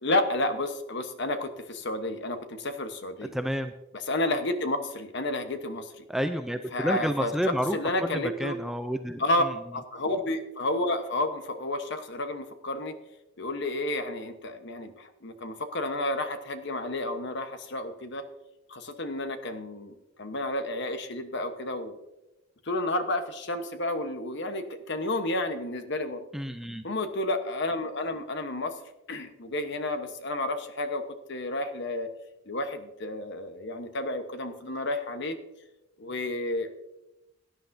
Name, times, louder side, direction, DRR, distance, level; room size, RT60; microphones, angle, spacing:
voice 1, 0.0-3.3 3.9-6.0 6.7-8.6 9.2-9.4 9.7-12.9 13.4-18.3 18.7-22.0 22.6-26.2 26.8-28.8 29.1-32.1 32.5-35.4 36.0-36.7, left 1 dB, 55° left, 8 dB, 1.0 m, -31 dB
voice 2, 3.3-3.7 6.1-7.8 8.2-9.2 26.3-26.8, equal, ahead, 7 dB, 0.4 m, -29 dB
17.0 x 10.5 x 2.6 m, 0.98 s
head